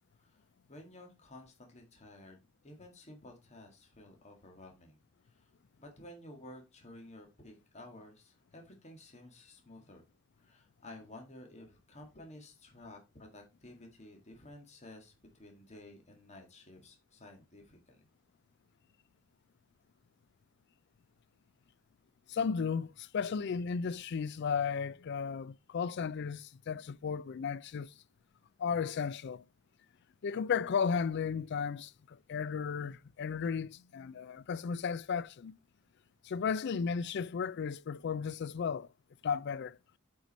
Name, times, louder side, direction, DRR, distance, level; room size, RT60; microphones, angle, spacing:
voice 1, 0.7-2.4 2.6-5.0 5.2-5.5 5.8-10.0 10.4-18.0, left 1 dB, 35° left, 1.7 m, -53 dB
voice 2, 22.3-27.9 28.6-29.4 30.2-35.5 36.2-38.9 39.2-39.8, left 6 dB, 55° left, 0.4 m, -34 dB
8.0 x 4.7 x 4.1 m
head